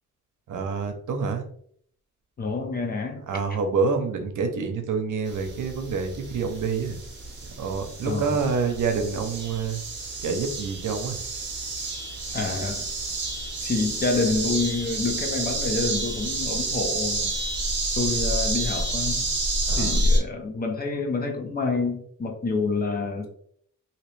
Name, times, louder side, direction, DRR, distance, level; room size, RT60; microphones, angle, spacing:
voice 1, 0.5-1.5 3.3-7.0 7.6-9.8 10.2-11.2 19.7-20.0, right 5 dB, 85° right, 6 dB, 0.7 m, -27 dB
voice 2, 2.4-3.3 8.0-8.4 12.3-12.9 13.6-17.3 18.0-19.3 19.7-23.3, left 3 dB, 30° left, 3 dB, 0.6 m, -28 dB
sound 1, 5.3-20.2, right 2 dB, 40° right, 0.7 m, -29 dB
2.9 x 2.8 x 3.1 m, 0.63 s
wide cardioid pair, 175°, 30 cm